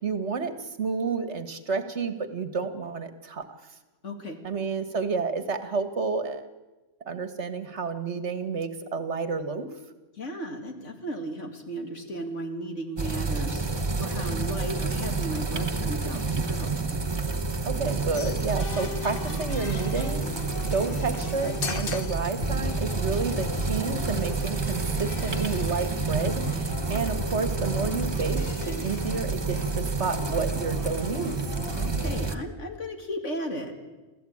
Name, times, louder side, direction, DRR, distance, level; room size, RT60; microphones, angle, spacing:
voice 1, 0.0-3.7 4.4-6.5 7.1-9.7 17.7-31.3, right 4 dB, 65° right, 10 dB, 1.8 m, -30 dB
voice 2, 4.0-4.4 10.1-17.0 31.7-33.8, equal, 70° left, 4 dB, 2.9 m, -35 dB
sound 1, 13.0-32.4, right 4 dB, 20° right, 1.0 m, -29 dB
sound 2, 18.1-32.1, left 7 dB, 50° left, 1.1 m, -39 dB
28.0 x 15.5 x 8.6 m, 1.2 s
omnidirectional pair, 1.3 m